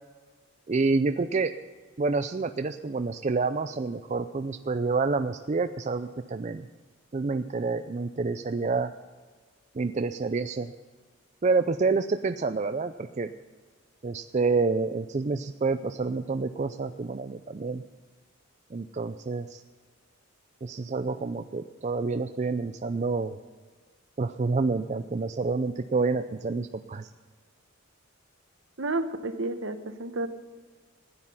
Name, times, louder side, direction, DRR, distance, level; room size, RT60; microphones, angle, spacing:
voice 1, 0.7-1.5 2.0-6.7 7.1-8.9 9.7-10.7 11.4-13.3 14.0-17.8 18.7-19.6 20.6-23.4 24.2-27.1, right 4 dB, 35° right, 8 dB, 0.4 m, -28 dB
voice 2, 28.8-30.3, right 2 dB, 65° right, 9 dB, 1.0 m, -31 dB
15.0 x 9.8 x 5.5 m, 1.5 s
head